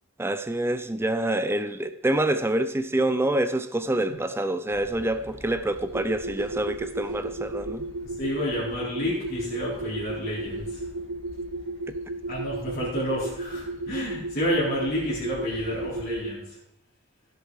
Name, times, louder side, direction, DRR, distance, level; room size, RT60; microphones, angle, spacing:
voice 1, 0.2-7.9 11.9-12.0, right 1 dB, 10° right, 11 dB, 0.4 m, -26 dB
sound 1, 4.7-16.2, equal, 65° left, 3.4 m, -47 dB
sound 2, 5.9-16.3, right 2 dB, 75° right, 1.3 m, -34 dB
voice 2, 8.0-10.9 12.3-16.6, equal, 50° left, -8 dB, 3.9 m, -30 dB
15.5 x 6.8 x 4.7 m, 0.78 s
head